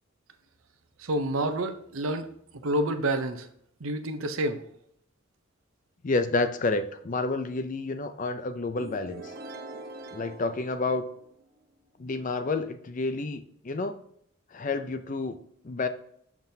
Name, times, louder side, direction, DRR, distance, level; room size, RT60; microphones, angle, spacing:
voice 1, 1.0-2.3 2.5-3.5 3.8-4.6, right 1 dB, 75° right, 8 dB, 0.7 m, -28 dB
voice 2, 6.0-9.3 10.1-11.0 12.0-14.0 14.5-15.4 15.6-15.9, left 3 dB, 35° left, 10 dB, 0.5 m, -29 dB
sound 1, 8.8-11.6, right 2 dB, 45° right, 0.8 m, -43 dB
7.0 x 5.9 x 2.8 m, 0.67 s
head